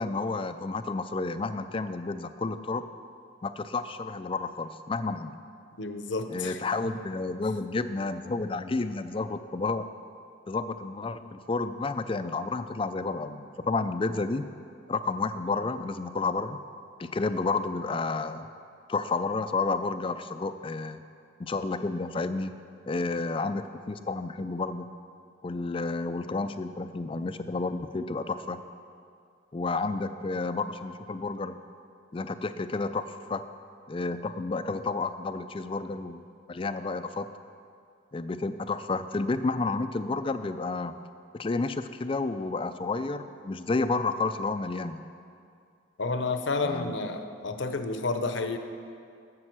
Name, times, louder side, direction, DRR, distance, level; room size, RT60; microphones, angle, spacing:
voice 1, 0.0-2.9 3.4-5.4 6.3-9.9 10.5-14.5 14.9-16.6 17.0-18.5 18.9-21.0 21.4-22.6 22.9-24.9 25.4-28.6 29.5-31.6 32.1-33.4 33.9-36.2 36.5-37.3 38.1-41.0 41.3-45.0 46.6-47.0, left 3 dB, 25° left, 11 dB, 0.3 m, -31 dB
voice 2, 5.8-6.6 46.0-48.6, left 3 dB, 60° left, 7 dB, 0.7 m, -30 dB
12.0 x 7.5 x 6.1 m, 2.4 s
head